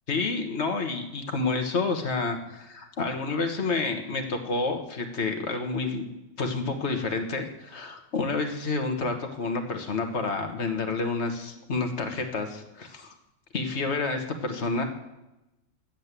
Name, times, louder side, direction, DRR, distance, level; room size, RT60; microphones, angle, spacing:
voice 1, 0.1-6.1 6.4-13.1 13.5-14.8, left 3 dB, 60° left, 5 dB, 1.6 m, -29 dB
10.5 x 7.6 x 8.2 m, 0.98 s
omnidirectional pair, 1.3 m